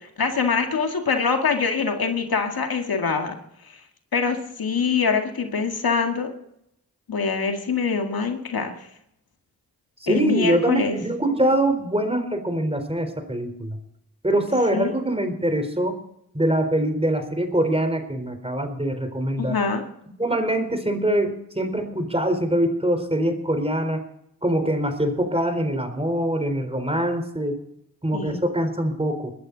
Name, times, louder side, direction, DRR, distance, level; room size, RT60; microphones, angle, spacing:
voice 1, 0.2-3.4 3.6-3.8 4.1-6.3 7.1-8.7 10.1-11.0 14.7-14.9 19.4-19.8 28.1-28.4, left 5 dB, 75° left, 4 dB, 2.1 m, -24 dB
voice 2, 10.0-13.8 14.2-16.0 16.3-19.6 20.2-24.0 24.4-27.6 28.0-29.3, right 1 dB, 15° right, 7 dB, 4.0 m, -23 dB
21.0 x 12.5 x 4.0 m, 0.77 s
cardioid pair, 45°, 37 cm